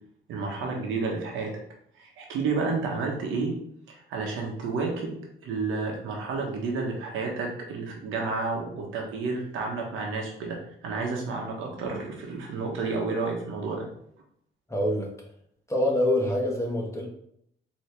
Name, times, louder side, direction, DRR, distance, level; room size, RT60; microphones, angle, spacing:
voice 1, 0.3-1.6 2.0-3.5 3.9-10.6 10.8-13.9, right 4 dB, 90° right, 1 dB, 1.1 m, -31 dB
voice 2, 14.7-15.1 15.7-17.1, left 1 dB, 15° left, -1 dB, 1.4 m, -25 dB
4.6 x 3.1 x 3.3 m, 0.69 s
cardioid pair, 90°, 20 cm